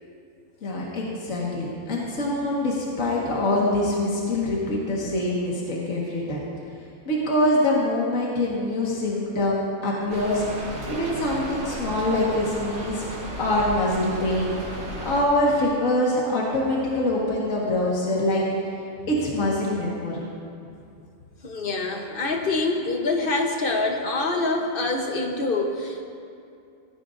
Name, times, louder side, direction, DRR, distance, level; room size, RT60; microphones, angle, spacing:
voice 1, 0.6-6.4 7.1-10.4 10.9-13.1 13.4-14.5 15.0-18.7 19.1-20.2, left 1 dB, 65° left, -4 dB, 2.0 m, -24 dB
Rain, 10.1-15.2, right 1 dB, 60° right, 2.0 m, -34 dB
voice 2, 21.4-26.0, left 2 dB, 45° left, 2 dB, 1.1 m, -25 dB
14.5 x 14.5 x 2.6 m, 2.5 s
omnidirectional pair, 1.5 m